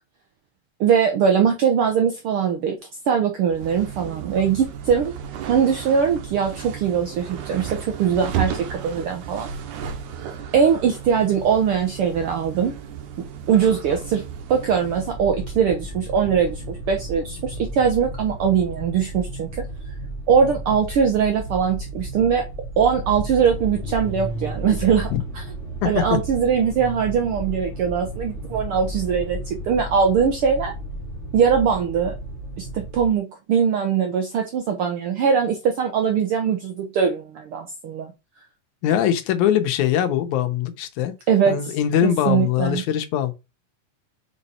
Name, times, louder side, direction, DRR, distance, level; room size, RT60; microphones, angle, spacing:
voice 1, 0.8-2.8 3.1-5.1 5.5-9.5 10.5-12.7 13.2-14.2 14.5-19.5 20.3-22.5 22.8-25.4 25.8-30.7 31.3-32.1 32.6-38.1 41.3-41.7 42.0-42.8, right 7 dB, 70° right, 1.3 m, -21 dB
sound 1, 3.5-15.2, right 8 dB, 90° right, 2.5 m, -34 dB
sound 2, 14.8-33.1, right 1 dB, 20° right, 2.2 m, -33 dB
voice 2, 25.8-26.2 38.8-41.1 41.5-43.3, left 10 dB, 80° left, 2.2 m, -22 dB
5.4 x 5.0 x 4.3 m
omnidirectional pair, 3.4 m